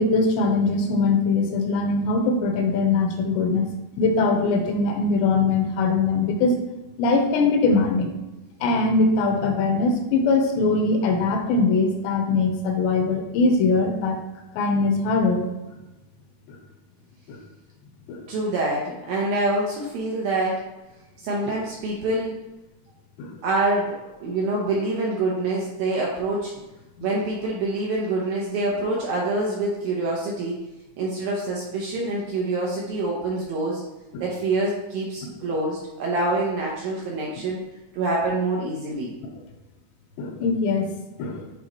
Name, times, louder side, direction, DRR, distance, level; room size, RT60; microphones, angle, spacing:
voice 1, 0.0-3.7 4.0-6.6 7.0-8.1 8.6-14.2 14.6-15.4 17.3-17.4 18.1-18.2 23.2-23.4 34.1-34.2 40.2-40.9 41.2-41.4, left 3 dB, 80° left, 3 dB, 2.9 m, -21 dB
voice 2, 18.3-20.6 21.2-22.4 23.4-26.5 27.0-30.6 31.0-33.8 34.2-37.6 37.9-39.1, right 2 dB, 75° right, -3 dB, 2.2 m, -26 dB
9.9 x 4.4 x 3.1 m, 1.0 s
omnidirectional pair, 5.2 m